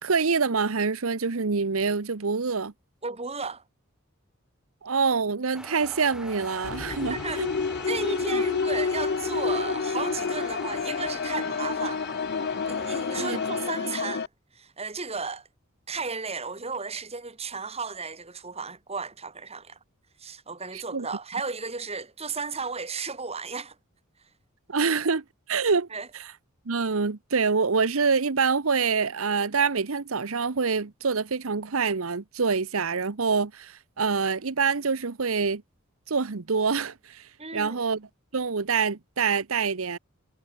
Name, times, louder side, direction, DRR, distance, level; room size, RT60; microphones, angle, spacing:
voice 1, 0.0-2.7 4.8-7.5 8.3-8.4 13.2-13.4 20.7-21.1 24.7-25.9 26.1-26.3 26.7-35.6 36.1-37.2 37.5-38.1 38.3-40.0, right 5 dB, 80° right, 1.0 m, -26 dB
voice 2, 3.0-3.6 7.1-7.5 7.9-12.1 12.7-14.3 14.6-15.5 15.9-19.8 20.2-23.8 25.9-26.1 37.4-37.8, right 4 dB, 30° right, 4.0 m, -34 dB
sound 1, 5.5-13.7, equal, 5° right, 3.3 m, -43 dB
sound 2, 6.6-14.3, left 5 dB, 50° left, 0.5 m, -29 dB
head